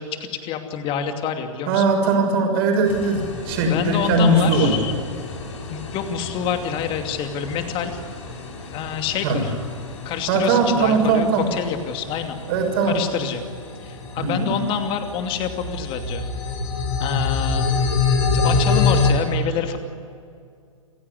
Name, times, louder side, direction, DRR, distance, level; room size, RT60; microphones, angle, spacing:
voice 1, 0.0-1.8 3.6-4.9 5.7-8.0 8.6-9.5 10.0-12.4 12.8-13.4 13.8-16.2 17.0-17.7 18.3-19.8, left 7 dB, 30° left, 6 dB, 2.6 m, -27 dB
voice 2, 1.7-4.7 9.2-9.4 10.3-11.4 12.5-13.0 14.2-14.5, right 3 dB, 45° right, 3 dB, 6.5 m, -19 dB
sound 1, 2.8-19.1, left 4 dB, 60° left, 5.4 m, -27 dB
28.5 x 16.0 x 9.9 m, 2.3 s
figure-of-eight pair, 105°, 17 cm